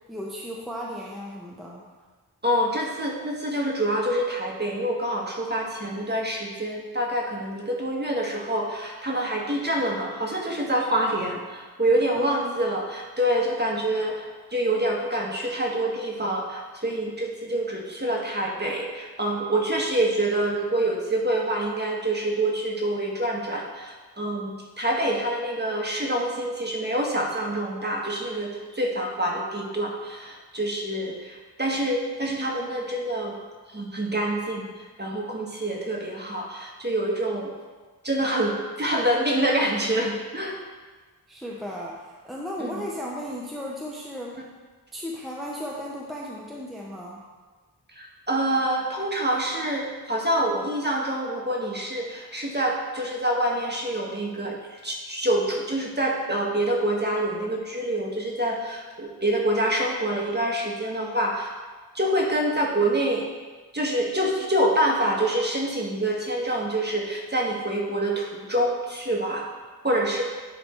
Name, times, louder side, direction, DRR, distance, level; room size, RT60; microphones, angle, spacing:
voice 1, 0.1-1.9 12.1-12.5 41.3-44.4 44.9-47.2, equal, ahead, -3 dB, 0.8 m, -35 dB
voice 2, 2.4-33.3 33.7-34.7 35.0-37.5 38.0-40.6 42.6-42.7 47.9-61.5 61.9-63.2 63.7-69.5 69.8-70.2, right 1 dB, 25° right, -1 dB, 1.4 m, -26 dB
10.0 x 3.4 x 4.4 m, 1.3 s
wide cardioid pair, 60°, 41 cm